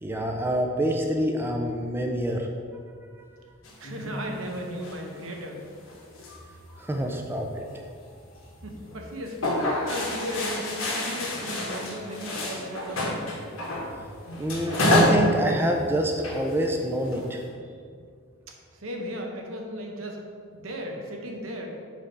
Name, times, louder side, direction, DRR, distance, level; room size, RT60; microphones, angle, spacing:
voice 1, 0.0-2.5 6.8-7.6 14.4-17.4, equal, 10° right, 2 dB, 0.4 m, -26 dB
sound 1, 3.6-5.4 5.7-7.1 7.6-7.9 8.4-8.5 8.8-9.0 9.2-13.9 14.2-15.3 15.5-15.7 16.1-17.4, left 1 dB, 90° left, 1.4 m, -28 dB
voice 2, 3.8-5.6 8.6-13.2 18.7-20.2 20.5-21.7, equal, 80° right, 1 dB, 0.9 m, -36 dB
6.3 x 3.4 x 5.3 m, 2.2 s
head